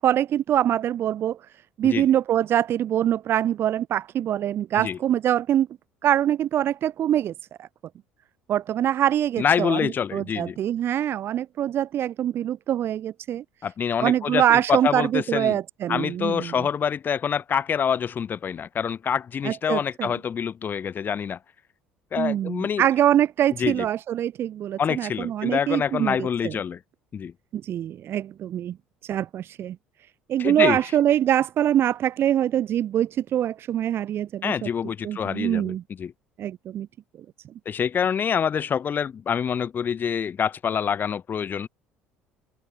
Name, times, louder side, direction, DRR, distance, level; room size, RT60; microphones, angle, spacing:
voice 1, 0.0-1.4 1.8-5.7 6.0-7.3 7.6-7.7 8.5-13.4 14.0-16.7 19.4-20.1 22.2-26.6 27.5-28.8 29.0-29.8 30.3-34.7 35.0-35.8 36.4-36.9, right 11 dB, 55° right, 7.0 m, -24 dB
voice 2, 9.4-10.6 13.6-15.6 15.9-21.4 22.1-22.9 23.6-23.9 24.8-26.8 27.1-27.3 30.4-30.8 34.4-36.1 37.7-41.7, left 7 dB, 40° left, 7.4 m, -26 dB
open air
hypercardioid pair, 65°, 5 cm